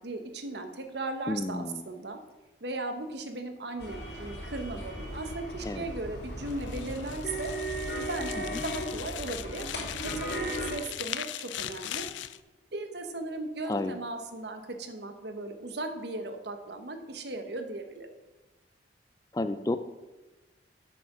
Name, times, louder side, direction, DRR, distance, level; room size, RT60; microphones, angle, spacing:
voice 1, 0.0-2.2 2.6-7.5 8.1-9.7 10.0-12.1 12.7-18.1, right 2 dB, 65° right, 6 dB, 1.1 m, -37 dB
voice 2, 1.3-1.8 5.6-5.8 8.5-8.6 13.7-13.9 19.3-19.8, left 2 dB, 20° left, 11 dB, 0.4 m, -31 dB
sound 1, 3.8-10.7, equal, 55° left, 2.7 m, -36 dB
sound 2, 6.5-12.4, left 12 dB, 80° left, 0.4 m, -40 dB
7.7 x 7.7 x 6.1 m, 1.1 s
head